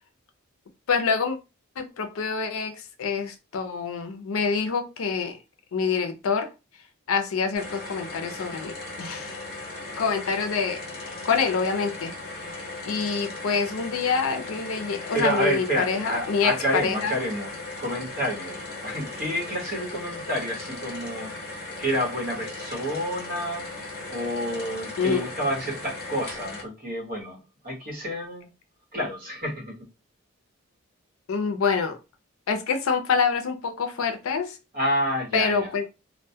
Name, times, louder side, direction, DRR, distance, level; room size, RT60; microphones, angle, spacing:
voice 1, 0.9-1.4 1.8-5.4 5.7-6.5 7.1-8.7 9.0-9.4 10.0-12.1 12.8-17.2 25.0-25.3 31.3-32.0 32.5-34.6 35.3-35.9, left 5 dB, 80° left, 0.5 m, -26 dB
sound 1, 7.5-26.6, left 2 dB, 50° left, 1.0 m, -37 dB
voice 2, 15.1-17.5 17.8-21.4 21.8-23.6 24.1-27.4 27.6-28.5 28.9-29.8 34.7-35.7, equal, 45° right, 0.9 m, -29 dB
2.1 x 2.1 x 2.7 m
head